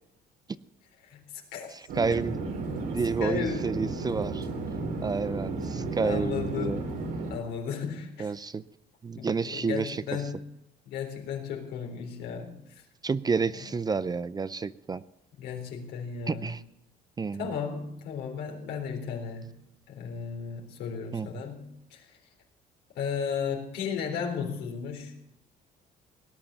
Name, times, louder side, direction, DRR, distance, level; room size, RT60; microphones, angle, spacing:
voice 1, 1.0-1.7 3.2-3.7 6.0-6.8 7.3-8.3 9.2-10.4 10.9-12.8 13.6-13.7 15.4-16.5 17.3-19.5 19.9-22.2 23.0-25.1, left 7 dB, 80° left, 1 dB, 3.8 m, -35 dB
voice 2, 1.7-2.4 2.9-4.5 5.0-6.8 8.2-8.6 9.0-10.0 13.0-15.0 16.3-16.6 17.2-17.5 21.1-21.3, right 5 dB, 25° right, 16 dB, 0.5 m, -30 dB
Chatter / Fixed-wing aircraft airplane, 1.9-7.3, right 3 dB, 85° right, 4.5 m, -33 dB
18.0 x 10.5 x 7.0 m, 0.81 s
cardioid pair, 110°, 17 cm